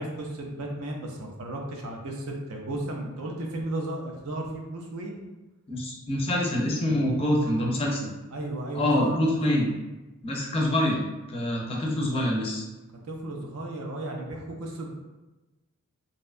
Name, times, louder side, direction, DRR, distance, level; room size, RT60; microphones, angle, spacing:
voice 1, 0.0-5.2 8.3-9.2 13.0-14.9, right 1 dB, 75° right, 1 dB, 0.5 m, -34 dB
voice 2, 5.7-8.1 8.7-9.7 10.2-11.0 11.3-12.6, left 1 dB, 25° left, -2 dB, 0.4 m, -25 dB
2.7 x 2.2 x 2.4 m, 1.1 s
head